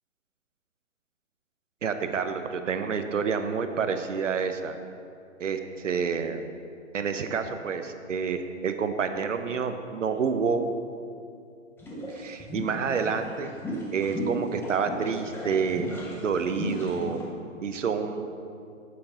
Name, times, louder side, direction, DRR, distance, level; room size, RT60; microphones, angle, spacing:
voice 1, 1.8-4.8 5.4-6.5 6.9-10.6 12.1-13.5 13.9-15.9 16.2-17.2 17.6-18.3, right 6 dB, 70° right, 8 dB, 0.9 m, -28 dB
sound 1, 11.8-17.2, left 1 dB, 5° left, 1.0 m, -36 dB
8.6 x 8.6 x 4.0 m, 2.4 s
figure-of-eight pair, 135°, 38 cm